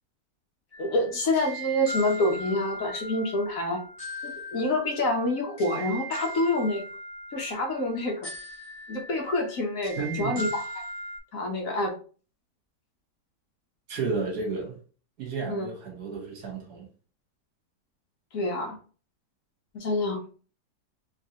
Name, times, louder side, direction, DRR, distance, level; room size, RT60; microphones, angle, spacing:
sound 1, 0.7-11.2, right 1 dB, 20° left, 1.4 m, -39 dB
voice 1, 0.8-3.8 4.2-6.8 7.3-8.2 8.9-10.8 11.3-11.9 15.5-15.7 18.3-18.8 19.7-20.2, left 1 dB, 55° left, 1.2 m, -27 dB
voice 2, 10.0-10.4 13.9-14.7 15.2-16.9, right 4 dB, 65° right, 1.6 m, -32 dB
4.4 x 3.3 x 2.9 m
omnidirectional pair, 1.8 m